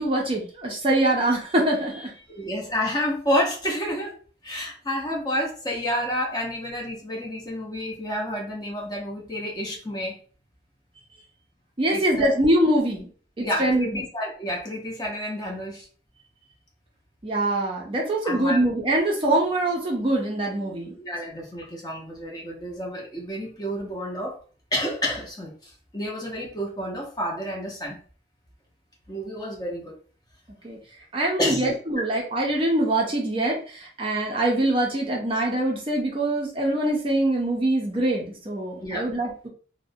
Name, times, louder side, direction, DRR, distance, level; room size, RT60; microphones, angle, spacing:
voice 1, 0.0-2.1 11.8-13.1 13.4-14.0 17.2-20.9 30.6-30.8 31.1-39.5, right 1 dB, 30° right, -1 dB, 0.4 m, -24 dB
voice 2, 2.3-4.1 4.4-10.2 11.9-12.3 13.4-15.9 18.2-18.6 21.0-24.4 24.7-28.0 29.1-30.0 31.4-31.8 38.8-39.1, equal, 20° left, -2 dB, 0.6 m, -29 dB
2.4 x 2.0 x 2.6 m, 0.41 s
head